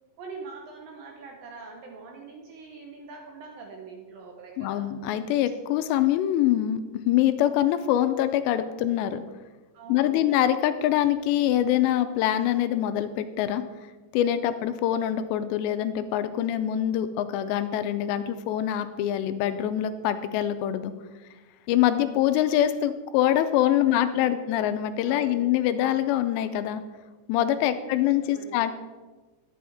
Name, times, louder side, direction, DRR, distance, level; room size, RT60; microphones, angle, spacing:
voice 1, 0.2-4.9 9.7-10.3 23.8-24.4 25.1-25.5 27.6-28.7, right 4 dB, 75° right, 0 dB, 2.2 m, -43 dB
voice 2, 4.6-6.8 7.1-9.2 9.9-13.6 14.1-20.9 21.7-26.8 27.3-28.8, left 11 dB, 85° left, 10 dB, 2.7 m, -24 dB
11.0 x 8.5 x 3.5 m, 1.3 s
omnidirectional pair, 5.0 m